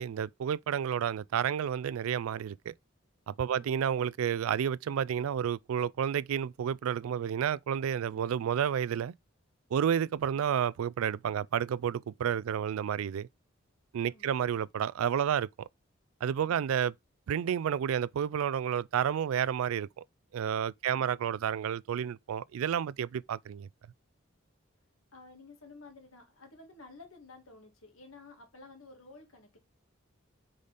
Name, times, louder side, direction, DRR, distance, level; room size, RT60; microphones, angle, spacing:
voice 1, 0.0-2.7 3.3-9.1 9.7-13.3 13.9-15.7 16.2-16.9 17.3-20.0 20.3-23.7, right 8 dB, 90° right, 0.3 m, -30 dB
voice 2, 14.0-14.3 25.1-29.6, left 3 dB, 85° left, 2.2 m, -53 dB
5.1 x 4.0 x 5.3 m
head